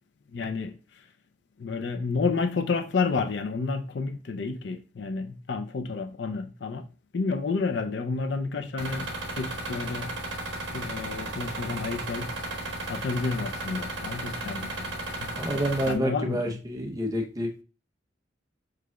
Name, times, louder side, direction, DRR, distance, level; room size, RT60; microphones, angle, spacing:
voice 1, 0.3-0.8 1.6-6.8 7.1-10.1 10.7-12.3 12.9-15.3 15.9-16.4, left 4 dB, 65° left, 0.5 m, -30 dB
sound 1, 8.8-15.9, right 2 dB, 70° right, 1.1 m, -34 dB
voice 2, 15.3-17.6, equal, 20° right, 0.7 m, -29 dB
4.9 x 4.7 x 2.3 m
head